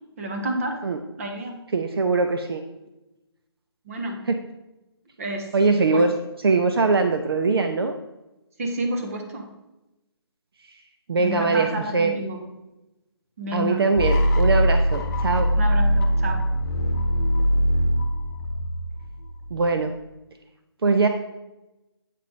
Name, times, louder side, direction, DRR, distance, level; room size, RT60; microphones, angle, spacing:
voice 1, 0.2-0.8 1.2-1.6 3.9-4.2 5.2-5.5 5.9-6.0 8.6-9.5 11.2-12.5 13.4-13.8 15.6-16.4, right 1 dB, 35° right, 4 dB, 1.1 m, -30 dB
voice 2, 1.7-2.6 4.3-4.4 5.5-6.1 6.4-7.9 11.1-12.1 13.5-15.5 19.5-19.9 20.8-21.1, right 3 dB, 60° right, 6 dB, 0.6 m, -21 dB
sound 1, 14.0-19.9, equal, 40° left, 1.0 m, -22 dB
8.4 x 4.0 x 5.0 m, 0.98 s
hypercardioid pair, 165°, 14 cm